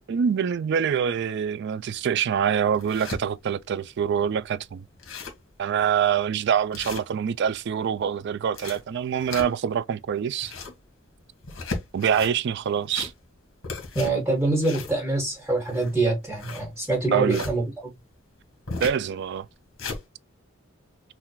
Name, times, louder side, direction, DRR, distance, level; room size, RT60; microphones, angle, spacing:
voice 1, 0.1-4.8 5.6-10.5 11.9-13.1 17.1-17.5 18.8-19.5, right 8 dB, 55° right, 0.3 m, -25 dB
sound 1, 1.9-2.0 2.5-3.2 3.8-3.9 4.1-4.2 4.6-4.7 4.9-5.5 5.9-6.1 6.7-7.5 8.3-9.8 10.2-10.8 11.4-12.3 12.8-13.4 13.6-17.6 18.7-19.0 19.5-20.0, left 3 dB, 70° left, 2.0 m, -36 dB
voice 2, 13.9-17.6, right 2 dB, 5° right, 1.3 m, -25 dB
5.7 x 2.4 x 2.2 m
head